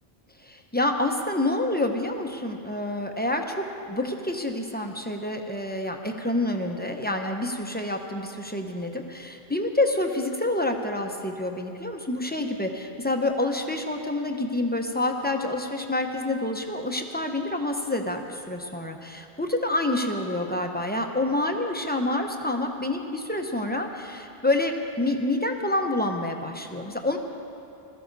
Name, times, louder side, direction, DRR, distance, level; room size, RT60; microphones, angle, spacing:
voice 1, 0.4-27.2, left 2 dB, 10° left, 3 dB, 0.9 m, -28 dB
21.0 x 14.5 x 4.1 m, 2.6 s
omnidirectional pair, 1.0 m